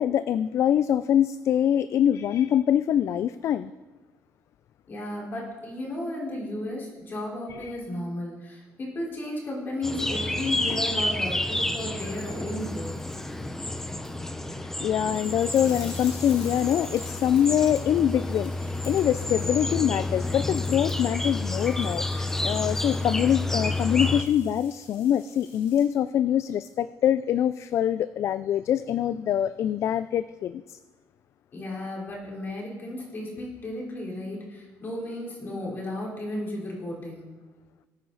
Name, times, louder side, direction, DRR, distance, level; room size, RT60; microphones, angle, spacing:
voice 1, 0.0-3.7 7.6-7.7 14.5-30.8, left 10 dB, 50° left, 0.3 m, -24 dB
voice 2, 4.9-12.9 31.5-37.3, left 1 dB, 35° left, 4.1 m, -34 dB
sound 1, 9.8-24.2, left 2 dB, 5° left, 0.7 m, -30 dB
sound 2, 12.1-14.3 15.1-25.8, left 4 dB, 70° left, 3.5 m, -50 dB
20.0 x 8.8 x 4.0 m
cardioid pair, 145°, 6 cm